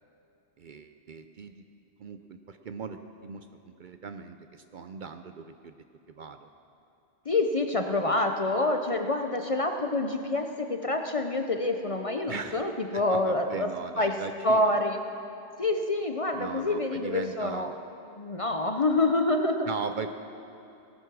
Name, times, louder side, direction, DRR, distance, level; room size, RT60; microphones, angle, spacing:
voice 1, 0.6-1.5 2.0-5.7 6.2-6.5 12.3-12.6 13.1-14.7 16.3-17.7 19.7-20.1, right 5 dB, 55° right, 8 dB, 0.6 m, -38 dB
voice 2, 7.3-13.7 14.0-14.1 14.4-15.0 15.6-17.7 18.1-19.7, left 2 dB, 40° left, 5 dB, 0.6 m, -27 dB
18.0 x 9.5 x 6.1 m, 2.7 s
omnidirectional pair, 1.1 m